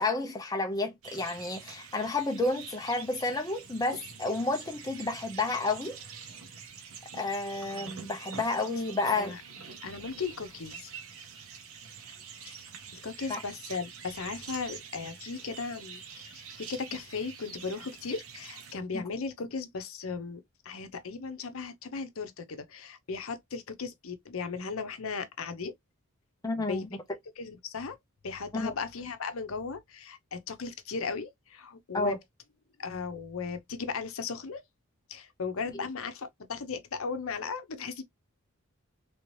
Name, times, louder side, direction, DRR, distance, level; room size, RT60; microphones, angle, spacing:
voice 1, 0.0-6.0 7.1-9.3 13.3-13.4 18.9-19.0 26.4-26.9 28.5-28.7 31.9-32.2, left 3 dB, 15° left, 0.5 m, -30 dB
sound 1, 1.0-18.7, right 6 dB, 75° right, 0.9 m, -46 dB
voice 2, 9.8-10.9 12.4-12.6 12.9-25.8 26.6-26.9 27.4-28.0 28.2-32.2 32.8-34.6 35.1-38.0, left 4 dB, 70° left, 0.7 m, -37 dB
3.4 x 2.8 x 3.1 m
head